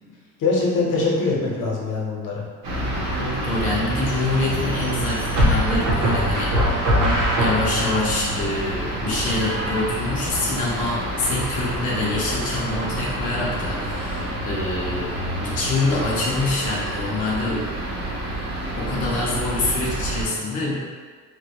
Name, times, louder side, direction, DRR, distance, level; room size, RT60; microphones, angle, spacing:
voice 1, 0.4-2.5, left 3 dB, 65° left, -3 dB, 0.6 m, -23 dB
sound 1, 2.6-20.3, right 1 dB, 85° right, 0.7 m, -28 dB
sound 2, 2.7-3.2 5.4-8.0, equal, 55° right, 0.7 m, -21 dB
voice 2, 3.2-7.1 7.3-17.7 18.8-21.0, left 2 dB, 25° left, -5 dB, 0.3 m, -26 dB
2.1 x 2.0 x 2.8 m, 1.5 s
cardioid pair, 145°, 34 cm